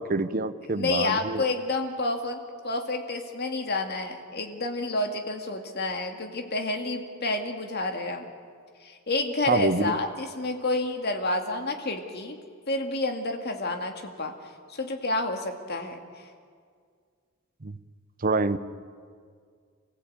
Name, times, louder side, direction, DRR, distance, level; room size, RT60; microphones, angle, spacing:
voice 1, 0.0-1.4 9.5-10.0 17.6-17.8 18.2-18.6, right 3 dB, 40° right, 12 dB, 0.8 m, -26 dB
voice 2, 0.6-8.3 8.8-12.4 12.7-16.3, left 2 dB, 50° left, 4 dB, 2.2 m, -29 dB
27.0 x 15.5 x 8.8 m, 2.1 s
head